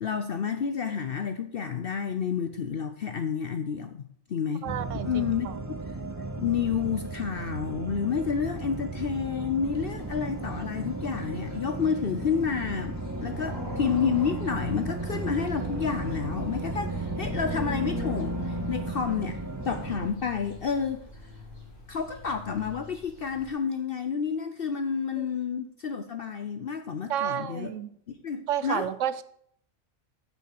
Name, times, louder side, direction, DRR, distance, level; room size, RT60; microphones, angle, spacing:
voice 1, 0.0-4.7 5.0-5.5 6.4-21.0 21.9-27.7 28.2-28.9, left 6 dB, 55° left, 8 dB, 0.7 m, -30 dB
sound 1, 4.6-20.1, right 3 dB, 20° right, 0.4 m, -35 dB
voice 2, 4.6-5.6 25.2-25.3 27.1-27.9 28.5-29.2, right 10 dB, 70° right, 15 dB, 1.0 m, -31 dB
sound 2, 9.7-23.5, left 3 dB, 75° left, 3.7 m, -39 dB
8.9 x 6.2 x 6.5 m, 0.65 s
omnidirectional pair, 1.4 m